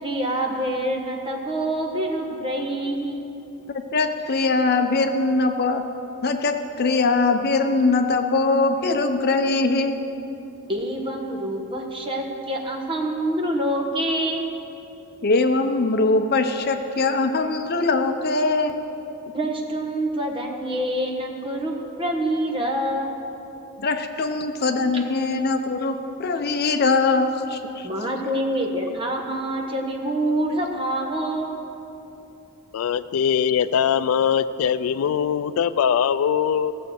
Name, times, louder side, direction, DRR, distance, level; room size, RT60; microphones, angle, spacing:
voice 1, 0.0-3.2 10.7-14.6 19.3-23.1 27.8-31.6, right 1 dB, 25° right, 1 dB, 1.3 m, -26 dB
voice 2, 3.9-5.8 6.2-9.9 15.2-18.7 23.8-27.9, left 3 dB, 45° left, 7 dB, 0.7 m, -21 dB
voice 3, 32.7-36.7, left 8 dB, 80° left, 15 dB, 0.3 m, -21 dB
16.0 x 7.3 x 6.5 m, 2.9 s
head